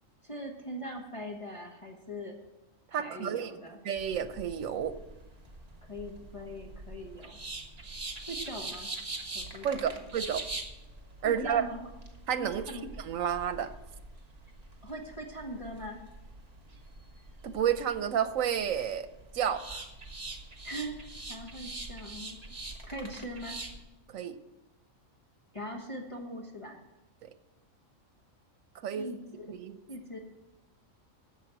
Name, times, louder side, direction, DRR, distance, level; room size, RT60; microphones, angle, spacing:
voice 1, 0.2-2.4 2.9-3.8 5.9-7.4 8.3-8.9 9.3-9.9 11.2-11.9 12.4-12.8 14.8-16.0 20.6-22.4 22.9-23.6 25.5-26.8 28.9-29.5 29.9-30.2, equal, 25° left, 0 dB, 1.2 m, -41 dB
voice 2, 2.9-3.5 3.8-4.9 9.6-10.4 11.2-11.7 12.3-13.7 17.4-19.1 19.3-19.8 24.1-24.4 27.2-27.3 28.8-29.1 29.5-29.8, right 8 dB, 85° right, 11 dB, 1.2 m, -31 dB
sound 1, 4.0-23.8, right 2 dB, 30° right, 1.4 m, -44 dB
11.0 x 7.5 x 7.5 m, 1.0 s
omnidirectional pair, 1.4 m